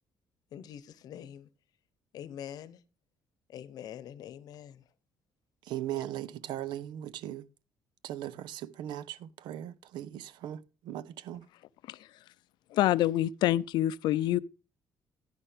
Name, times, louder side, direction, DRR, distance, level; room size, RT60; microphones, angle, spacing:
voice 1, 0.5-1.5 2.1-2.8 3.5-4.8, left 10 dB, 60° left, 0.9 m, -44 dB
voice 2, 5.6-7.5 8.0-11.5, right 12 dB, 90° right, 0.6 m, -39 dB
voice 3, 12.7-14.4, left 13 dB, 80° left, 0.5 m, -26 dB
10.5 x 9.9 x 3.5 m
cardioid pair, 165°, 7 cm